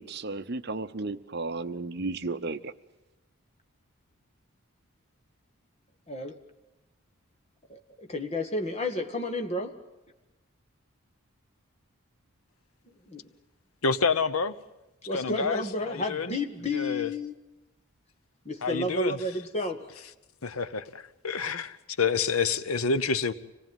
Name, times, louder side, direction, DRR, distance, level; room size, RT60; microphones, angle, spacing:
voice 1, 0.0-2.7, right 3 dB, 50° right, 0.8 m, -34 dB
voice 2, 6.1-6.4 7.7-9.8 13.1-13.3 15.1-17.3 18.5-19.9, left 2 dB, 30° left, 1.8 m, -31 dB
voice 3, 13.8-14.6 15.1-16.4 16.7-17.1 18.6-19.2 20.4-23.3, left 5 dB, 80° left, 0.9 m, -28 dB
26.0 x 18.5 x 9.2 m
head